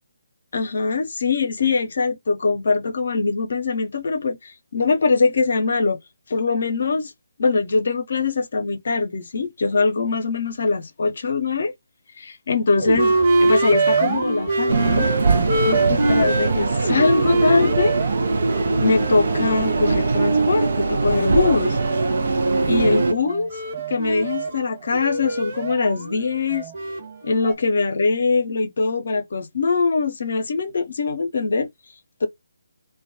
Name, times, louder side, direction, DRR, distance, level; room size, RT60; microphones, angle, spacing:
voice 1, 0.5-6.0 6.3-7.1 7.4-11.7 12.2-15.1 15.7-18.0 18.8-21.8 22.7-23.5 23.9-26.7 27.2-31.7 32.2-32.3, left 4 dB, 60° left, 0.6 m, -22 dB
sound 1, 12.8-20.5 20.9-27.5, right 3 dB, 40° right, 1.3 m, -24 dB
sound 2, 14.7-23.1, right 3 dB, 60° right, 0.5 m, -21 dB
2.2 x 2.2 x 2.6 m
figure-of-eight pair, 145°, 0 cm